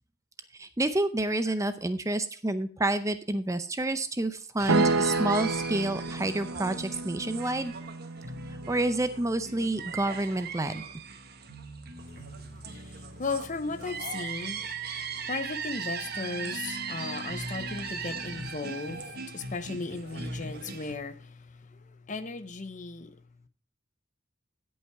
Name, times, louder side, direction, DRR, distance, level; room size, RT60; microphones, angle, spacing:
voice 1, 0.6-7.7 8.7-10.8, right 2 dB, 15° right, 0.6 m, -29 dB
sound 1, 4.6-21.0, right 5 dB, 50° right, 1.2 m, -39 dB
sound 2, 4.7-8.8, right 3 dB, 85° right, 0.9 m, -30 dB
voice 2, 12.0-23.2, left 3 dB, 40° left, 0.8 m, -37 dB
16.5 x 5.6 x 4.6 m
head